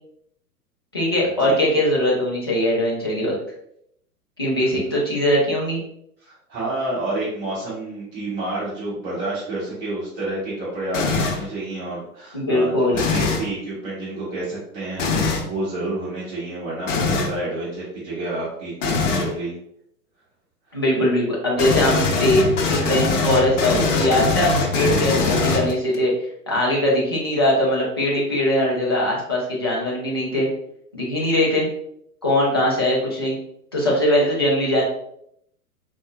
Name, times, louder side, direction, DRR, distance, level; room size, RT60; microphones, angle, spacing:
voice 1, 0.9-3.3 4.4-5.8 12.3-13.0 20.7-26.1 26.5-30.5 30.9-31.7 32.2-33.4 33.7-34.8, left 1 dB, 20° left, -6 dB, 0.3 m, -21 dB
voice 2, 6.2-19.5, right 2 dB, 25° right, -8 dB, 1.1 m, -29 dB
sound 1, 10.9-11.5 12.9-13.5 15.0-15.5 16.9-17.4 18.8-19.3 21.6-26.0, left 4 dB, 55° left, 0.7 m, -22 dB
4.1 x 2.1 x 2.4 m, 0.72 s
figure-of-eight pair, 105°, 46 cm